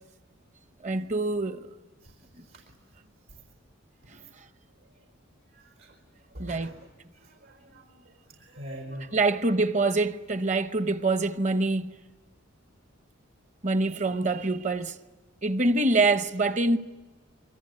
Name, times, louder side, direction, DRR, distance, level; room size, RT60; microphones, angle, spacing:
voice 1, 0.8-1.7 2.4-2.5 4.1-4.2 6.4-6.7 9.1-11.9 13.6-15.0 15.4-16.8, right 2 dB, 35° right, 0.9 m, -25 dB
voice 2, 2.0-2.7 3.3-3.4 4.2-4.3 4.8-5.0 5.5-6.0 6.3-6.8 7.1-9.4, right 1 dB, 85° right, 4.7 m, -45 dB
25.0 x 24.5 x 9.7 m
head